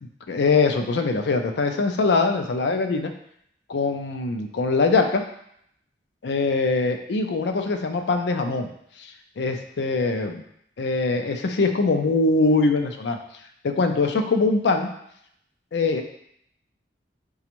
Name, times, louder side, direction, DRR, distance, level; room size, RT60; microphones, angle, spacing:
voice 1, 0.3-3.1 3.7-5.2 6.2-8.7 9.0-10.4 10.8-13.2 13.6-14.9 15.7-16.0, left 3 dB, 70° left, 5 dB, 0.4 m, -22 dB
5.0 x 2.3 x 2.9 m, 0.72 s
head